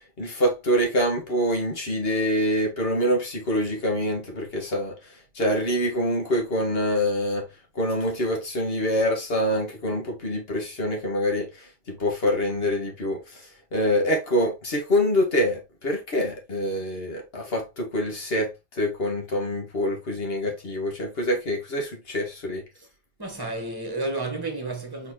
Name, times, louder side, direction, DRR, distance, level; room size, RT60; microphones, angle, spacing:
voice 1, 0.2-5.0 5.4-7.5 7.8-13.4 13.7-22.6, equal, 65° left, 1.9 m, -25 dB
voice 2, 23.2-25.1, right 2 dB, 20° right, 1.4 m, -31 dB
4.4 x 4.1 x 2.9 m
omnidirectional pair, 1.1 m